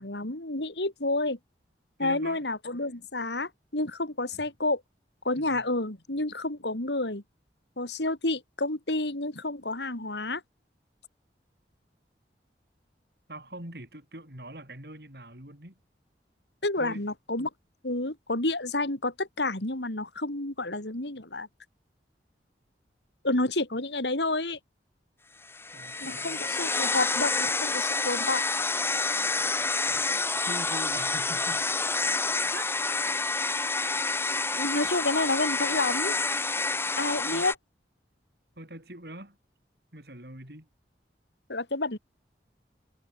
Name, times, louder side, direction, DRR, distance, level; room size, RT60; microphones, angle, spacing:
voice 1, 0.0-1.4 2.0-4.8 5.2-7.2 7.8-10.4 16.6-17.5 17.8-21.5 23.2-24.6 26.0-28.4 34.6-36.2 37.0-37.5 41.5-42.0, left 2 dB, 80° left, 3.8 m, -29 dB
voice 2, 2.0-2.4 4.3-4.5 5.3-5.7 13.3-15.8 16.8-17.0 25.7-26.4 30.5-31.7 32.5-32.8 37.2-37.5 38.6-39.4 39.9-40.7, right 1 dB, 60° right, 7.1 m, -43 dB
sound 1, 25.5-37.6, left 3 dB, 15° left, 1.1 m, -28 dB
head